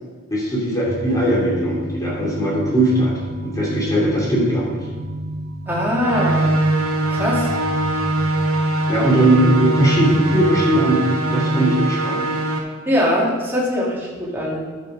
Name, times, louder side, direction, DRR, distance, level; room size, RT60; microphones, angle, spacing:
voice 1, 0.3-3.1 3.4-4.8 8.9-12.3, right 1 dB, 15° left, -4 dB, 3.1 m, -19 dB
sound 1, 0.9-10.9, equal, 60° right, 1.6 m, -31 dB
sound 2, 1.1-6.4, right 1 dB, 35° left, 2.4 m, -34 dB
voice 2, 5.7-6.6 7.1-7.5 12.9-14.6, equal, 10° right, -5 dB, 2.5 m, -21 dB
sound 3, 6.0-12.6, right 2 dB, 80° right, 1.5 m, -21 dB
10.5 x 7.5 x 4.9 m, 1.4 s
head